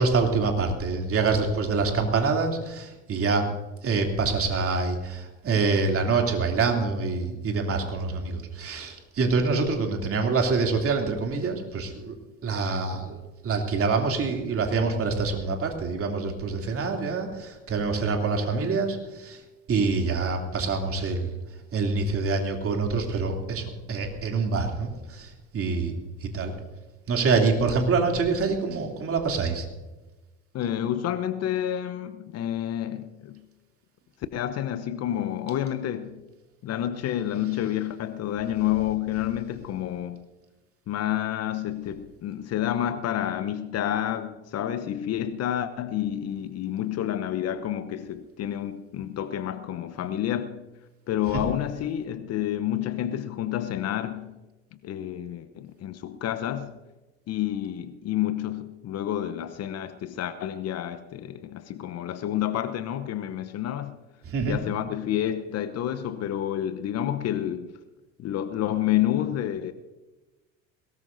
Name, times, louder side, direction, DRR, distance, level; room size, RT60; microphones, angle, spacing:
voice 1, 0.0-3.5 3.8-12.2 12.4-13.2 13.4-19.4 19.7-21.3 21.7-26.5 27.1-29.7 51.3-51.4 64.2-64.6, right 4 dB, 35° right, 3.0 m, -26 dB
voice 2, 30.5-33.4 34.3-36.2 36.6-40.3 40.9-50.6 51.1-54.3 54.8-56.7 57.3-63.9 64.5-67.7 68.2-69.7, left 11 dB, 40° left, 0.9 m, -29 dB
22.0 x 18.5 x 2.7 m
figure-of-eight pair, 70°, 37 cm